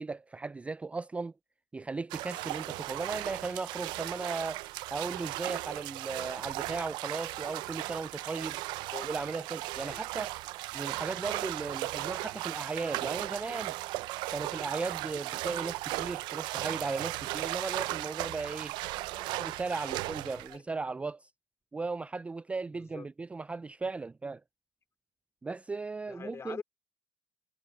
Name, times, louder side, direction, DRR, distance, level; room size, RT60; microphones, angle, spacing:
voice 1, 0.0-1.3 1.7-4.6 4.9-8.6 9.0-10.3 10.7-13.7 14.3-18.8 19.1-21.3 21.7-24.4 25.4-26.6, right 3 dB, 15° right, 0.3 m, -36 dB
sound 1, 2.1-20.6, right 19 dB, 75° right, 0.5 m, -36 dB
voice 2, 19.8-20.6 22.7-23.1 26.1-26.6, left 5 dB, 35° left, 3.4 m, -45 dB
supercardioid pair, 75°, 8 cm